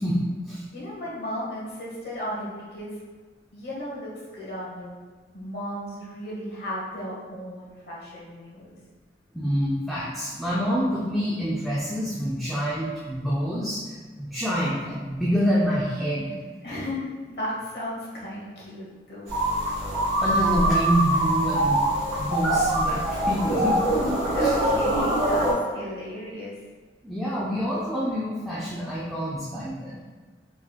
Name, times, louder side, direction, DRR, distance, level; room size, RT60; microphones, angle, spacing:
voice 1, 0.0-0.6 9.3-13.8 14.1-16.3 20.2-21.8 22.2-24.3 27.0-30.0, equal, ahead, -8 dB, 0.4 m, -27 dB
voice 2, 0.7-3.0 3.5-5.0 5.3-8.8 16.6-19.3 24.3-26.6, equal, 65° left, -6 dB, 1.1 m, -34 dB
sound 1, 19.3-25.5, right 1 dB, 35° right, 1.5 m, -24 dB
3.7 x 3.1 x 2.3 m, 1.4 s
head